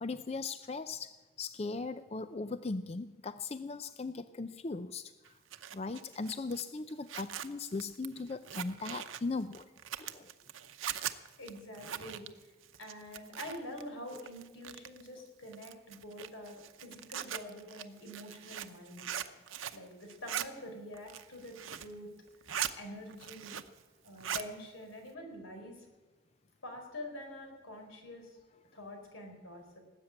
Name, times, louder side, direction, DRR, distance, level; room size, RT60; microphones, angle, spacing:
voice 1, 0.0-5.3 5.7-9.7 10.0-10.3, left 3 dB, 30° left, 12 dB, 0.4 m, -38 dB
Zipper (clothing), 5.3-13.8 14.1-15.1 15.5-19.8 20.1-20.5 20.9-21.9 22.3-22.7 23.1-23.8 24.1-24.5, right 10 dB, 85° right, 0.8 m, -41 dB
voice 2, 11.4-12.5 12.8-19.1 19.7-22.1 22.7-23.6 24.0-25.9 26.6-28.4 28.7-29.8, left 1 dB, 90° left, 4 dB, 4.2 m, -46 dB
19.0 x 8.3 x 8.7 m, 1.2 s
head